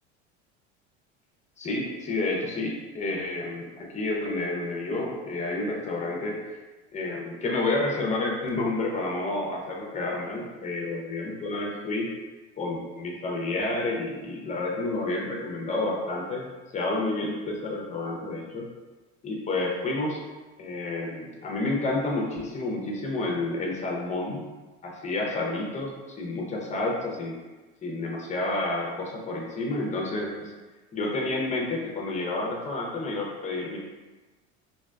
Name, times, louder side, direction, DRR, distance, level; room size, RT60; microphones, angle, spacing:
voice 1, 1.6-6.4 6.9-12.1 12.6-16.5 16.7-18.6 19.2-20.2 20.6-24.4 24.8-27.4 27.8-30.5 30.9-33.8, left 2 dB, 20° left, -1 dB, 0.6 m, -30 dB
2.6 x 2.1 x 2.3 m, 1.2 s
hypercardioid pair, 80°, 34 cm